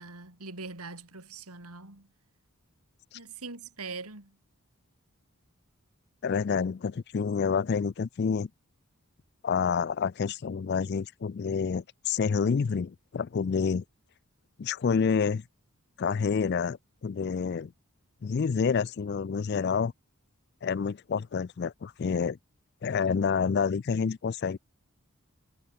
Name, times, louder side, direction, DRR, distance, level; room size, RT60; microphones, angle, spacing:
voice 1, 0.0-2.1 3.1-4.4, right 4 dB, 85° right, 3.7 m, -42 dB
voice 2, 6.2-8.5 9.4-13.8 14.6-15.4 16.0-17.7 18.2-19.9 20.6-22.4 22.8-24.6, left 6 dB, 45° left, 0.3 m, -28 dB
head